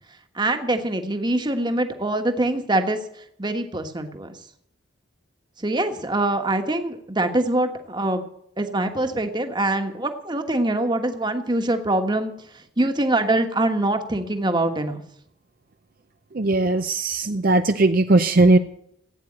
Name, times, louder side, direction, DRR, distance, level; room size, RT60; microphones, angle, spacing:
voice 1, 0.3-3.0 3.4-4.3 5.6-8.2 8.6-12.3 12.8-15.0, right 2 dB, 20° right, 7 dB, 1.4 m, -24 dB
voice 2, 16.3-18.6, right 2 dB, 45° right, 8 dB, 0.6 m, -18 dB
16.0 x 9.3 x 8.7 m, 0.71 s
head